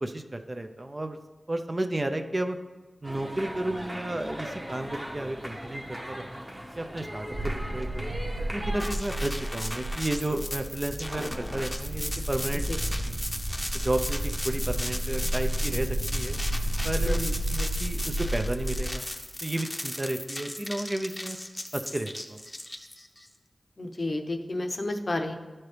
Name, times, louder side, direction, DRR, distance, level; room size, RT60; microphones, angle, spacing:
voice 1, 0.0-1.2 1.5-2.6 3.0-6.4 6.8-8.1 8.5-12.6 13.0-13.2 13.7-16.4 16.8-17.2 17.5-19.1 19.4-21.4 21.7-22.4, right 1 dB, 35° right, 6 dB, 0.5 m, -32 dB
sound 1, 3.0-8.9, equal, 10° right, 0.9 m, -39 dB
sound 2, 7.3-18.9, right 1 dB, 80° right, 0.9 m, -31 dB
sound 3, 8.8-23.3, left 1 dB, 20° left, 0.7 m, -36 dB
voice 2, 23.8-25.3, left 2 dB, 55° left, 5 dB, 0.7 m, -31 dB
12.0 x 4.4 x 3.3 m, 1.2 s
cardioid pair, 50°, 0 cm